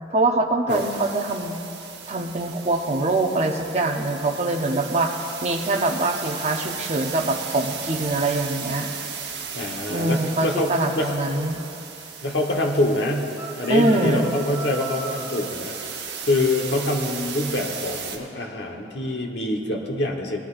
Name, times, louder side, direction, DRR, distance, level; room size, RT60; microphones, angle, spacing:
voice 1, 0.1-1.6 2.1-8.9 9.9-11.6 13.7-14.3, right 2 dB, 35° right, 2 dB, 0.7 m, -23 dB
sound 1, 0.7-18.2, right 6 dB, 65° right, 0.9 m, -36 dB
voice 2, 9.5-11.1 12.2-20.4, left 1 dB, 70° left, 1 dB, 1.1 m, -25 dB
sound 2, 13.3-15.4, right 2 dB, 10° right, 0.9 m, -36 dB
18.0 x 10.0 x 2.5 m, 2.9 s
head